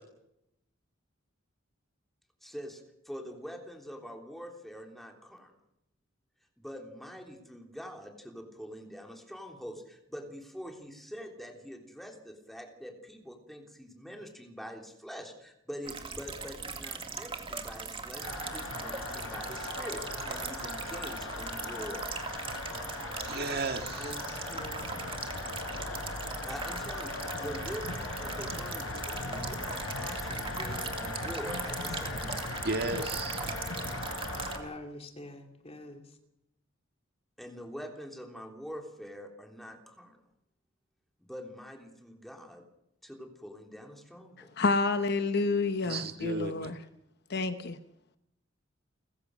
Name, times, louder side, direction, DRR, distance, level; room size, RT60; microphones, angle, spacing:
voice 1, 2.4-5.5 6.6-20.0 20.3-22.1 26.4-32.6 37.4-40.2 41.3-42.6 43.0-44.5, equal, ahead, 3.5 m, -44 dB
sound 1, 15.8-34.6, right 5 dB, 25° right, 2.1 m, -40 dB
sound 2, 18.2-34.6, left 2 dB, 80° left, 4.6 m, -38 dB
voice 2, 23.3-24.1 32.6-33.4 45.8-46.5, right 3 dB, 50° right, 1.9 m, -34 dB
voice 3, 23.9-24.9 34.5-36.1, left 1 dB, 30° left, 2.7 m, -45 dB
voice 4, 44.6-46.8 47.3-47.8, left 3 dB, 55° left, 1.1 m, -29 dB
30.0 x 15.0 x 6.4 m
head